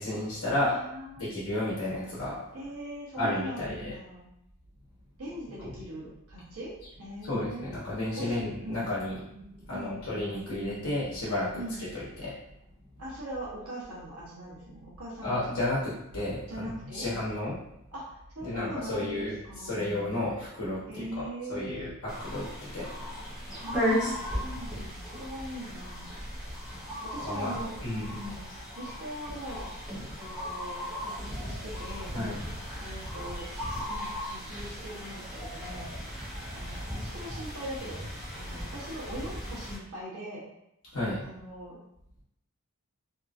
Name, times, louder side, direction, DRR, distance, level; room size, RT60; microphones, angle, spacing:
voice 1, 0.0-0.8 1.2-2.4 3.2-3.9 7.2-9.2 9.7-11.6 11.9-12.3 15.2-17.6 18.4-22.9 26.8-26.9 27.2-27.5 27.8-28.2 32.1-32.4 40.9-41.2, left 1 dB, 85° left, -8 dB, 0.9 m, -32 dB
voice 2, 0.6-1.2 2.5-4.3 5.2-7.7 8.2-8.3 8.6-8.8 9.7-10.0 11.5-11.8 13.0-15.4 16.5-17.1 17.9-19.9 20.9-21.9 23.6-26.2 27.0-27.7 28.0-28.5 28.8-29.7 29.9-32.1 32.8-33.5 33.9-35.9 36.5-38.0 38.3-40.5 41.2-41.8, right 1 dB, 80° right, -6 dB, 0.8 m, -41 dB
sound 1, 8.5-12.7, right 1 dB, 30° left, 1.1 m, -51 dB
sound 2, 22.1-39.8, equal, 5° right, 0.7 m, -36 dB
2.8 x 2.4 x 2.4 m, 0.80 s
head